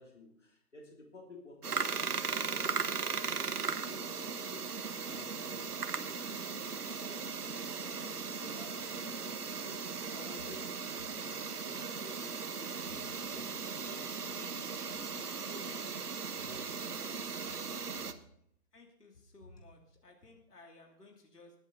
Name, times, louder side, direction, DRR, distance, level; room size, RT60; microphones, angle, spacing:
voice 1, 0.0-7.6 7.9-10.7 11.1-17.9 19.5-19.6, left 2 dB, 50° left, 1 dB, 3.3 m, -53 dB
sound 1, 1.6-18.1, right 5 dB, 70° right, 1.2 m, -38 dB
voice 2, 18.7-21.5, left 2 dB, 75° left, 2 dB, 3.0 m, -58 dB
21.0 x 8.1 x 4.0 m, 0.73 s
hypercardioid pair, 180°, 47 cm